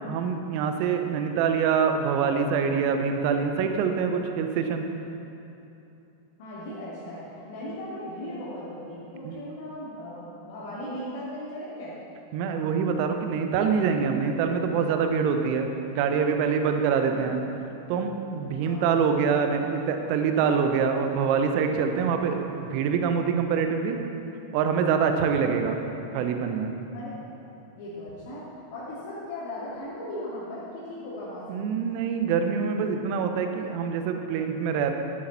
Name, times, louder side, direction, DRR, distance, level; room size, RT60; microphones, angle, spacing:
voice 1, 0.1-4.8 9.2-9.4 12.3-17.4 17.9-24.0 24.5-25.8 26.1-26.7 31.5-34.9, right 6 dB, 45° right, 6 dB, 1.1 m, -25 dB
voice 2, 6.4-12.0 17.1-17.3 18.6-18.9 26.9-27.3 27.8-31.7, left 1 dB, 55° left, -9 dB, 2.7 m, -38 dB
12.0 x 11.5 x 4.3 m, 2.9 s
figure-of-eight pair, 90°, 0 cm